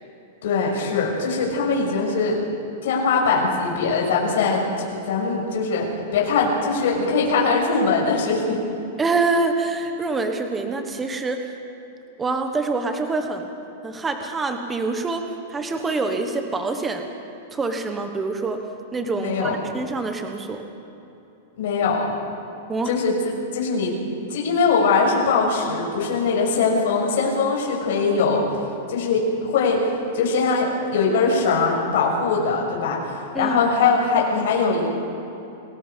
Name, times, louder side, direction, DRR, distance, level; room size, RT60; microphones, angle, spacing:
voice 1, 0.4-2.4 2.8-4.7 5.0-8.6 19.2-19.6 21.6-22.2 22.8-23.9 24.3-28.4 28.9-29.8 30.1-34.9, left 4 dB, 60° left, -2 dB, 6.4 m, -21 dB
voice 2, 9.0-11.4 12.2-13.5 13.8-15.2 15.5-17.0 17.5-18.6 18.9-20.6 22.7-22.9 33.3-33.6, right 3 dB, 10° right, 5 dB, 1.1 m, -25 dB
29.0 x 19.5 x 5.3 m, 2.9 s
supercardioid pair, 180°, 0 cm